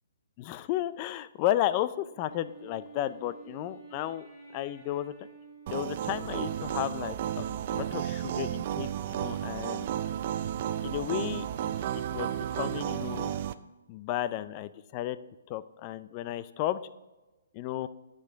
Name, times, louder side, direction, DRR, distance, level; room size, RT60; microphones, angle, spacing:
voice 1, 0.4-4.3 4.5-5.1 5.7-9.9 10.8-13.3 13.9-15.2 15.5-16.8 17.5-17.9, left 13 dB, 30° left, 15 dB, 0.4 m, -33 dB
Wind instrument woodwind instrument, 2.0-6.8, right 5 dB, 10° left, 2.9 m, -51 dB
sound 1, 5.7-13.5, right 10 dB, 40° right, 0.4 m, -33 dB
10.5 x 7.7 x 3.5 m, 1.1 s
hypercardioid pair, 155°, 0 cm